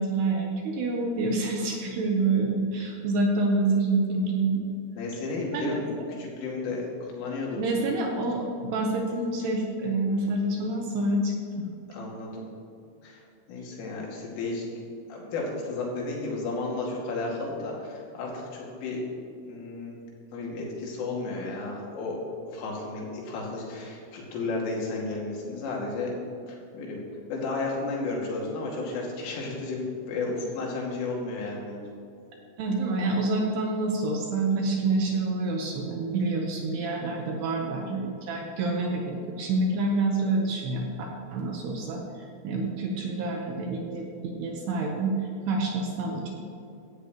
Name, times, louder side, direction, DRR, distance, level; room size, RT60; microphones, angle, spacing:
voice 1, 0.0-4.6 5.5-5.8 7.6-11.7 32.6-40.9 41.3-45.1 45.5-46.3, right 2 dB, 70° right, 1 dB, 2.8 m, -27 dB
voice 2, 5.0-7.6 11.9-12.5 13.0-13.2 13.5-14.7 15.1-19.0 19.5-20.0 20.3-22.2 22.5-26.2 26.5-27.0 27.3-31.9, left 3 dB, 80° left, -3 dB, 4.9 m, -33 dB
16.5 x 13.5 x 3.1 m, 2.6 s
omnidirectional pair, 5.7 m